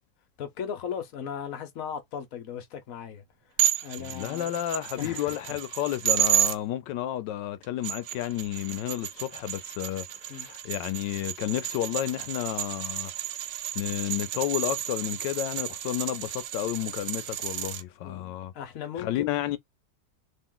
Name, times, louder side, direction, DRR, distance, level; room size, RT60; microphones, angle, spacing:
voice 1, 0.4-3.2 3.8-4.6 5.0-5.6 10.3-10.5 18.0-19.4, left 8 dB, 55° left, 1.2 m, -37 dB
sound 1, 3.6-6.6 7.6-17.8, right 13 dB, 90° right, 1.3 m, -31 dB
voice 2, 4.0-13.1 13.7-18.5 19.0-19.6, left 13 dB, 90° left, 1.3 m, -31 dB
3.8 x 2.5 x 3.8 m
omnidirectional pair, 1.9 m